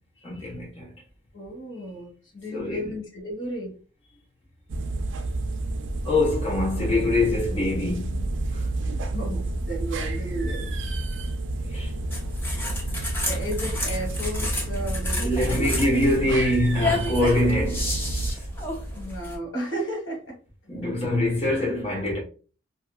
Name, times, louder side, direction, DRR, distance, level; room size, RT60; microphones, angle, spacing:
voice 1, 0.2-0.9 2.5-2.9 6.0-8.7 11.7-11.9 15.2-18.1 20.7-22.2, left 1 dB, 30° left, 1.0 m, -24 dB
voice 2, 1.3-3.7 9.1-10.7 13.2-15.7 18.9-20.3, right 1 dB, 90° left, 1.3 m, -34 dB
sound 1, 4.7-19.1, right 2 dB, 75° right, 0.4 m, -30 dB
sound 2, 12.1-19.4, left 1 dB, 10° left, 0.6 m, -31 dB
2.8 x 2.6 x 2.3 m
head